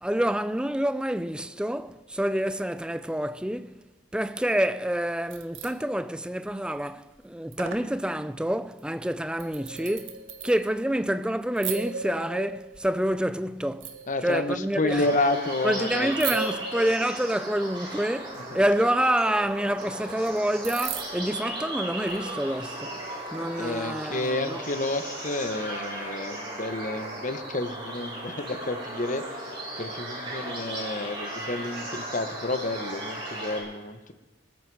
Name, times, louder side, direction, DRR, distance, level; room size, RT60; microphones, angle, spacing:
voice 1, 0.0-3.8 4.1-14.0 14.2-15.0 15.6-23.0 23.3-24.6, right 1 dB, 5° right, 0.5 m, -27 dB
sound 1, 5.1-5.7 6.5-6.9 7.1-7.2 7.5-7.9 8.8-8.9 9.4-10.9 11.6-13.1 13.8-14.8 16.1-17.6 19.5-19.6 20.3-20.4 20.6-21.4 22.1-22.3, right 7 dB, 85° right, 1.6 m, -37 dB
voice 2, 14.1-16.1 18.5-18.6 23.6-29.4 29.8-34.1, left 2 dB, 40° left, 1.1 m, -30 dB
sound 2, 14.9-33.6, right 1 dB, 25° right, 7.5 m, -36 dB
20.0 x 13.5 x 4.8 m
head